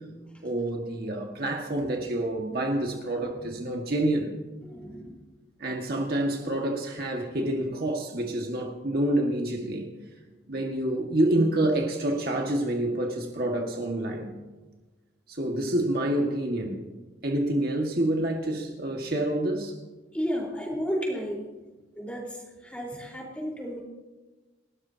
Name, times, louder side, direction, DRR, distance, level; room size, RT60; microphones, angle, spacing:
voice 1, 0.4-4.3 5.6-9.9 10.5-14.3 15.3-16.9 17.2-19.8, right 1 dB, 55° right, 1 dB, 1.8 m, -27 dB
voice 2, 4.6-5.1 20.1-21.4 22.0-23.8, equal, 5° left, -2 dB, 4.1 m, -32 dB
29.5 x 13.0 x 2.9 m, 1.2 s
head